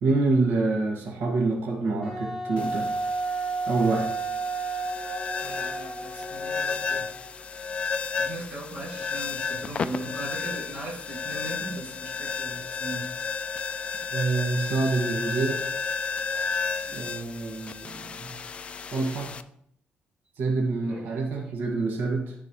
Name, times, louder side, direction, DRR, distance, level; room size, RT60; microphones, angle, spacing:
voice 1, 0.0-2.9 3.7-4.1 14.1-15.6 16.9-18.3 18.9-19.3 20.4-22.3, right 3 dB, 85° right, -1 dB, 1.8 m, -26 dB
Wind instrument woodwind instrument, 2.0-7.5, right 3 dB, 10° right, 2.2 m, -32 dB
sound 1, 2.6-19.4, left 5 dB, 35° left, 0.3 m, -33 dB
voice 2, 5.4-7.1 8.2-13.0 16.9-17.0 17.6-17.7 20.8-21.0, right 2 dB, 35° right, -3 dB, 2.4 m, -39 dB
13.0 x 4.8 x 3.1 m, 0.70 s
cardioid pair, 165°, 4 cm